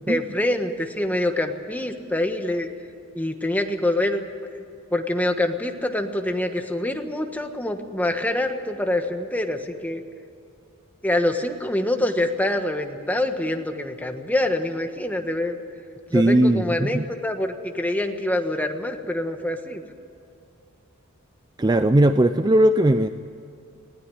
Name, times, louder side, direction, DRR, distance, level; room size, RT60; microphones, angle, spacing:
voice 1, 0.1-2.7 3.1-4.2 4.5-4.6 4.9-10.0 11.0-15.6 16.1-19.8, left 1 dB, 10° left, 5 dB, 1.3 m, -25 dB
voice 2, 16.1-17.1 21.6-23.1, right 1 dB, 20° right, 10 dB, 0.4 m, -18 dB
19.5 x 17.0 x 9.9 m, 2.5 s
head